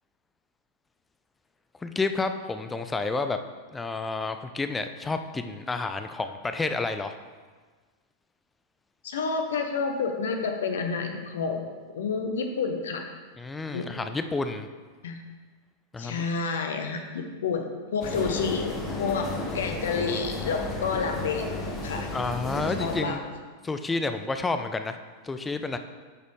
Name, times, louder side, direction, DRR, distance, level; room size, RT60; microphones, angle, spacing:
voice 1, 1.8-3.4 3.7-7.1 13.4-14.7 15.9-16.2 22.1-23.2 23.6-25.0 25.2-25.8, left 3 dB, 10° left, 8 dB, 0.4 m, -30 dB
voice 2, 9.0-11.6 11.9-13.0 13.7-13.9 15.0-15.2 16.0-21.5 21.8-22.1 22.8-23.2, left 5 dB, 60° left, 5 dB, 0.8 m, -29 dB
sound 1, 18.0-23.0, left 2 dB, 25° left, 1.3 m, -33 dB
10.5 x 4.1 x 3.2 m, 1.4 s
figure-of-eight pair, 90°, 0 cm